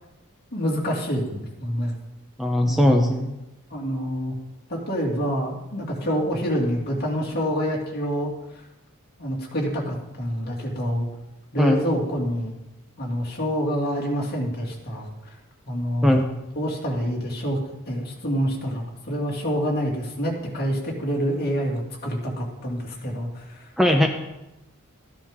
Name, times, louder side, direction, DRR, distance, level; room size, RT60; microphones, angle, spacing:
voice 1, 0.5-1.9 2.6-3.0 3.7-4.3 4.7-8.6 9.2-11.1 11.5-12.5 13.0-15.1 15.7-16.2 16.6-17.6 17.9-23.7, equal, 45° left, -1 dB, 2.4 m, -27 dB
voice 2, 2.4-3.4 11.6-11.8 16.0-16.3 23.8-24.1, left 1 dB, ahead, 2 dB, 0.8 m, -19 dB
14.0 x 10.0 x 3.7 m, 0.96 s
head